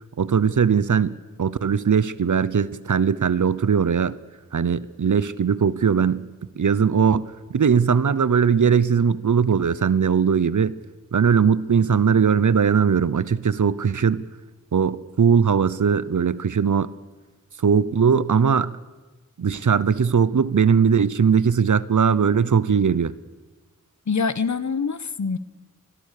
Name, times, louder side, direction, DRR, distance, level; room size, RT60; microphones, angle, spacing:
voice 1, 0.2-4.2 4.5-6.3 6.5-10.7 11.1-14.2 14.7-16.9 17.6-18.7 19.4-23.1, right 6 dB, 70° right, 18 dB, 0.9 m, -20 dB
voice 2, 24.1-25.4, left 5 dB, 65° left, 15 dB, 1.2 m, -25 dB
26.0 x 21.5 x 6.8 m, 1.2 s
wide cardioid pair, 55°, 31 cm